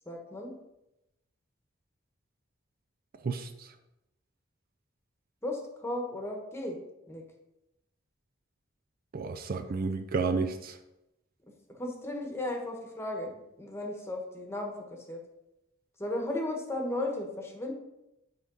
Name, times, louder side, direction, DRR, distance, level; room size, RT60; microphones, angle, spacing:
voice 1, 0.1-0.5 5.4-6.8 7.1-7.2 11.7-15.2 16.0-17.7, left 1 dB, 15° left, 1 dB, 1.2 m, -35 dB
voice 2, 3.2-3.7 9.1-10.8, right 4 dB, 50° right, 8 dB, 0.4 m, -31 dB
10.0 x 3.7 x 3.9 m, 0.90 s
head